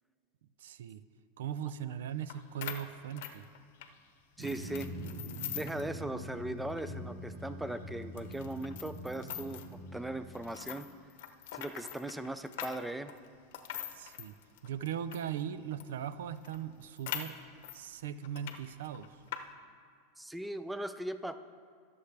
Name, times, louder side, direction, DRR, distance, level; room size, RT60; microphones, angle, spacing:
voice 1, 0.6-1.0 1.4-3.5 13.9-14.4 14.6-17.4 17.7-19.2, right 9 dB, 85° right, 14 dB, 0.5 m, -39 dB
sound 1, 2.3-2.4 2.6-3.9 4.4-5.9 6.2-6.3 6.7-6.8 7.4-7.5 8.2-9.7 10.3-15.3 15.8-15.9 16.1-16.2 16.4-17.8 18.2-18.6 18.8-19.4, left 11 dB, 70° left, 0.8 m, -43 dB
voice 2, 4.4-4.9 5.5-9.6 9.9-10.9 11.5-13.1 20.2-21.4, right 1 dB, 5° right, 11 dB, 0.4 m, -38 dB
Drum, 4.4-10.9, equal, 60° right, 1.7 m, -44 dB
20.0 x 7.0 x 3.4 m, 2.2 s
supercardioid pair, 125°, 0 cm